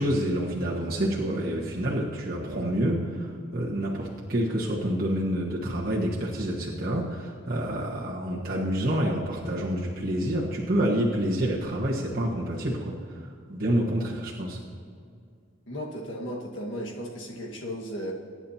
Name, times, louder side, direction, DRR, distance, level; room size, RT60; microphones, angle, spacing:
voice 1, 0.0-12.9 13.5-14.6, right 1 dB, 45° right, -5 dB, 1.5 m, -28 dB
voice 2, 15.7-18.1, equal, 70° left, -1 dB, 1.7 m, -35 dB
23.0 x 9.9 x 2.9 m, 2.3 s
head